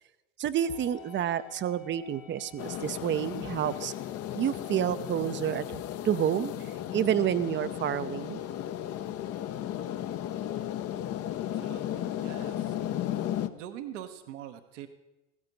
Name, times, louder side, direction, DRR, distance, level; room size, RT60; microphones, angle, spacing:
voice 1, 0.4-3.9 4.3-6.5 6.9-8.4, right 10 dB, 30° right, 15 dB, 0.6 m, -29 dB
sound 1, 0.6-14.2, left 9 dB, 80° left, 2.8 m, -56 dB
sound 2, 2.6-13.5, left 11 dB, 40° left, 0.7 m, -35 dB
voice 2, 11.5-12.8 13.5-14.9, right 11 dB, 70° right, 8 dB, 1.1 m, -43 dB
15.0 x 13.5 x 4.1 m, 0.98 s
hypercardioid pair, 80°, 38 cm